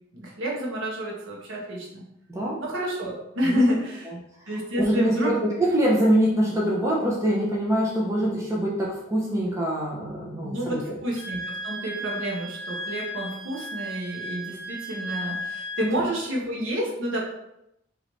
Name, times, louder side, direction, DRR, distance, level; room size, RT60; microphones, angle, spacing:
voice 1, 0.1-2.0 2.6-4.1 4.5-5.3 10.4-17.2, equal, 70° right, -3 dB, 1.1 m, -29 dB
voice 2, 4.8-11.0 15.9-16.1, right 1 dB, 15° right, -5 dB, 0.6 m, -24 dB
Wind instrument woodwind instrument, 11.2-15.9, equal, 60° left, 0.8 m, -35 dB
3.2 x 3.1 x 4.0 m, 0.82 s
head